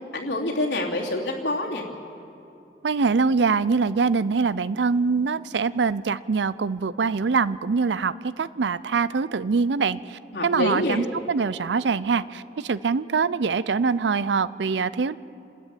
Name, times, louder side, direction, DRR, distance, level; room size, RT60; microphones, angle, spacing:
voice 1, 0.0-1.8 10.3-11.1, left 1 dB, 90° left, -1 dB, 3.0 m, -27 dB
voice 2, 2.8-15.2, right 5 dB, 90° right, 17 dB, 0.5 m, -24 dB
28.5 x 13.0 x 9.2 m, 2.8 s
head